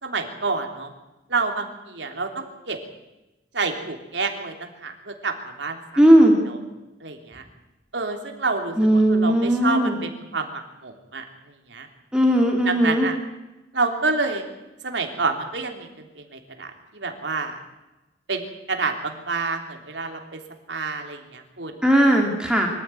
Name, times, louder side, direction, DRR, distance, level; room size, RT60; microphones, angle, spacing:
voice 1, 0.0-0.9 1.3-2.8 3.5-5.8 6.5-6.6 7.0-7.4 7.9-11.2 11.7-11.9 12.6-13.2 13.7-14.4 14.8-15.9 16.2-17.6 18.3-20.4 20.7-21.8, right 3 dB, 80° right, 4 dB, 3.4 m, -28 dB
voice 2, 6.0-6.3 8.8-10.0 12.1-13.1 21.8-22.7, equal, 5° right, 0 dB, 2.8 m, -17 dB
24.0 x 14.5 x 9.3 m, 1.0 s
head